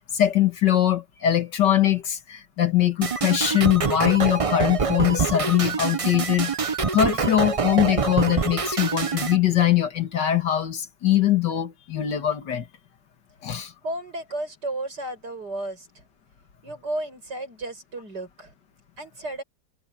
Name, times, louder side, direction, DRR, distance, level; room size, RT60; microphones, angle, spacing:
voice 1, 0.0-6.5 6.9-12.7 13.4-13.7, left 12 dB, 80° left, 2.2 m, -22 dB
sound 1, 3.0-9.4, right 5 dB, 50° right, 0.4 m, -25 dB
voice 2, 13.8-16.0 16.6-18.5 19.0-19.4, right 1 dB, 70° right, 7.9 m, -33 dB
omnidirectional pair, 1.9 m